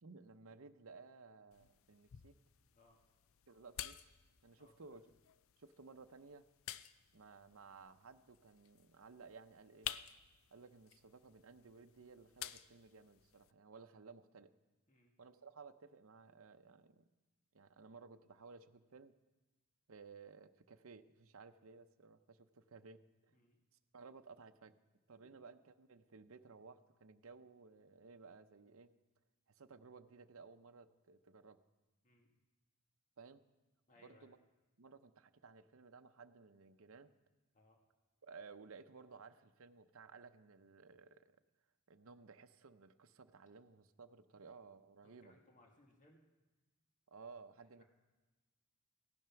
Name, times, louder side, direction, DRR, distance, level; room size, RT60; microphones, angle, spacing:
voice 1, 0.0-2.3 3.5-4.0 4.4-5.1 5.6-6.4 7.1-9.9 10.5-14.5 15.2-17.1 17.5-19.1 19.9-23.3 23.9-24.7 25.1-28.9 29.5-31.6 33.2-33.4 34.0-34.4 34.8-37.1 38.2-41.4 41.9-45.4 47.1-47.8, right 4 dB, 65° right, 9 dB, 0.7 m, -57 dB
sound 1, 1.5-13.5, left 11 dB, 65° left, 0.5 m, -52 dB
voice 2, 4.6-5.0 14.9-15.1 23.3-23.6 25.2-25.3 32.0-32.3 33.9-34.3 37.5-37.8 45.0-46.2 47.8-47.9, left 1 dB, 35° left, 1 dB, 1.7 m, -67 dB
16.0 x 11.0 x 5.8 m, 1.1 s
head